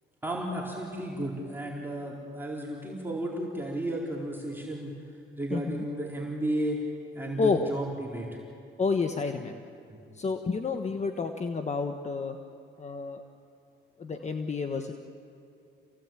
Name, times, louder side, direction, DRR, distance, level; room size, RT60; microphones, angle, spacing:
voice 1, 0.2-4.9 5.4-6.8 7.1-8.4 9.9-10.0, right 1 dB, 10° right, -3 dB, 4.4 m, -33 dB
voice 2, 5.5-5.8 7.4-7.6 8.8-9.6 10.1-12.4 12.8-13.2 14.0-14.9, left 4 dB, 35° left, 6 dB, 1.3 m, -30 dB
28.0 x 17.5 x 9.1 m, 2.6 s
cardioid pair, 90°, 20 cm